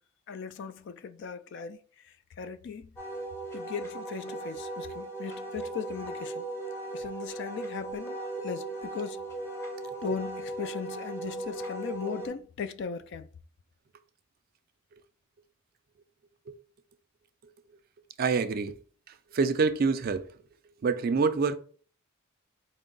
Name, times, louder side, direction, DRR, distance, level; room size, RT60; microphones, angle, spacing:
voice 1, 0.3-1.8 2.0-2.9 3.5-6.4 6.9-8.2 8.4-9.2 10.0-13.3, left 6 dB, 60° left, 0.3 m, -38 dB
Wind instrument woodwind instrument, 3.0-12.3, right 2 dB, 10° left, 0.6 m, -37 dB
voice 2, 18.2-18.8 19.3-20.3 20.8-21.6, right 4 dB, 45° right, 0.4 m, -26 dB
4.4 x 2.0 x 3.8 m
head